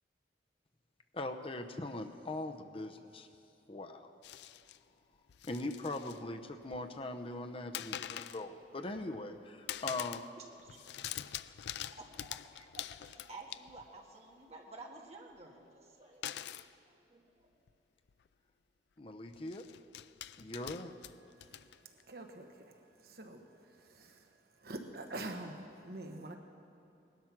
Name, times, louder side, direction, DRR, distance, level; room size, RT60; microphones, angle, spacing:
voice 1, 1.1-3.3 3.7-4.1 5.4-10.2 19.0-19.7 20.4-20.9, left 2 dB, 30° left, 7 dB, 0.7 m, -41 dB
sound 1, 4.2-4.8 5.3-6.2 6.5-7.1 7.7-8.5 8.9-9.4 9.7-10.3 10.6-14.0 16.2-16.7 17.7-17.8 18.1-18.3 19.3-22.0, left 11 dB, 70° left, 0.4 m, -45 dB
voice 2, 10.4-10.8 11.6-17.5, right 2 dB, 40° right, 0 dB, 1.8 m, -53 dB
voice 3, 22.1-22.7 23.0-23.4 23.9-24.2 24.6-26.4, right 2 dB, 60° right, 4 dB, 1.3 m, -44 dB
19.0 x 12.5 x 6.0 m, 2.8 s
head